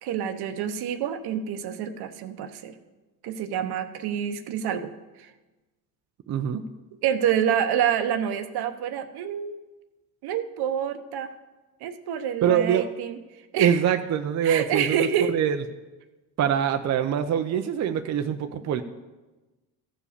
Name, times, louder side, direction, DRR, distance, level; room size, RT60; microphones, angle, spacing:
voice 1, 0.0-2.7 3.2-4.9 5.2-5.3 7.0-9.6 10.2-11.3 11.8-13.2 13.5-13.8 14.4-15.3, right 9 dB, 60° right, 9 dB, 1.0 m, -27 dB
voice 2, 6.3-6.6 12.4-12.9 13.6-15.6 16.4-18.8, right 9 dB, 40° right, 7 dB, 0.6 m, -24 dB
14.5 x 5.0 x 6.7 m, 1.2 s
cardioid pair, 110°, 42 cm